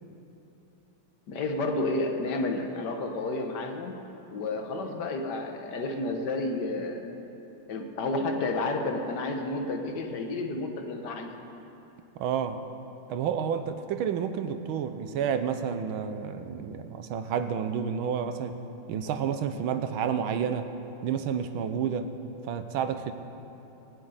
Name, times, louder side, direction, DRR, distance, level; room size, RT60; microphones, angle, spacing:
voice 1, 1.3-3.9 4.3-7.1 7.7-11.3, left 2 dB, 55° left, 4 dB, 1.7 m, -31 dB
voice 2, 12.2-12.6 13.1-18.6 18.9-20.7 21.0-22.1 22.4-23.1, right 7 dB, 75° right, 9 dB, 1.6 m, -30 dB
16.0 x 7.7 x 9.6 m, 3.0 s
omnidirectional pair, 2.3 m